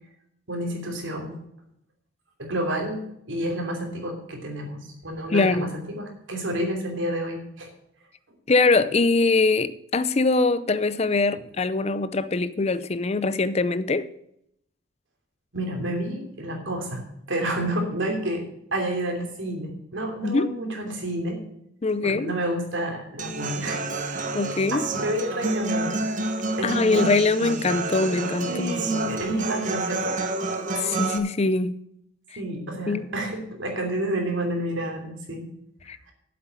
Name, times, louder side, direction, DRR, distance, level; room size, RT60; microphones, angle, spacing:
voice 1, 0.5-1.4 2.4-7.7 15.5-18.4 18.7-21.4 22.0-23.8 24.7-26.0 26.6-27.2 28.5-30.2 32.4-35.5, right 1 dB, 80° right, 3.0 m, -29 dB
voice 2, 5.3-5.8 8.5-14.1 20.2-20.5 21.8-22.3 24.3-24.8 26.6-28.9 30.8-31.8 32.9-33.1 35.9-36.0, left 3 dB, 35° left, 0.5 m, -23 dB
Human voice / Acoustic guitar, 23.2-31.2, right 3 dB, 40° right, 1.0 m, -29 dB
8.0 x 7.7 x 8.0 m
head